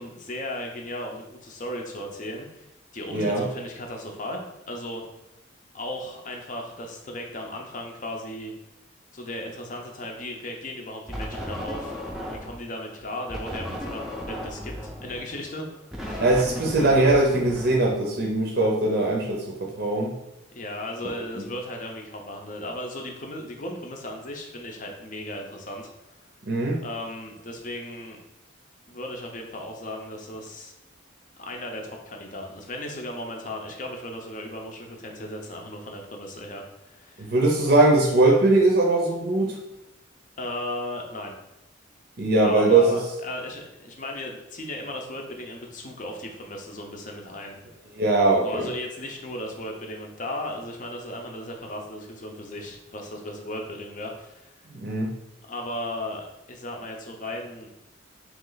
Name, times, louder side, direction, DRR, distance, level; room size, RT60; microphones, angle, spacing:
voice 1, 0.0-2.7 2.9-5.0 5.7-8.5 9.1-12.0 12.4-15.7 16.0-16.2 16.8-17.0 20.5-25.9 26.8-28.2 28.9-30.7 31.4-37.3 40.4-41.3 42.4-47.6 48.4-54.5 55.5-57.7, left 1 dB, 40° left, 2 dB, 0.6 m, -36 dB
voice 2, 3.1-3.4 16.2-19.4 19.8-20.1 21.4-21.5 26.4-26.8 37.2-39.5 42.2-43.0 48.0-48.7 54.7-55.1, right 2 dB, 50° right, -1 dB, 0.6 m, -20 dB
sound 1, 11.1-12.7 13.3-18.4, equal, ahead, 0.5 m, -35 dB
3.1 x 3.1 x 3.9 m, 0.88 s
head